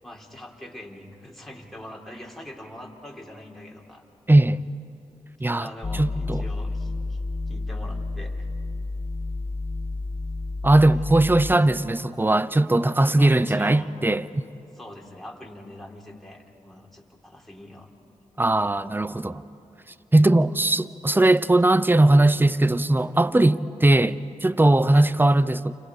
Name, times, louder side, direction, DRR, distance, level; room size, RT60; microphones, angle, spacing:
voice 1, 0.0-4.0 5.5-7.2 7.5-8.5 13.1-13.9 14.7-17.9 24.9-25.1, left 1 dB, ahead, 4.3 m, -43 dB
voice 2, 4.3-4.6 5.4-5.7 5.9-6.4 10.6-14.4 18.4-19.4 20.1-25.7, right 2 dB, 15° right, 0.8 m, -19 dB
sound 1, 5.8-11.6, left 3 dB, 45° left, 2.5 m, -30 dB
29.5 x 27.0 x 5.0 m
cardioid pair, 45°, 13 cm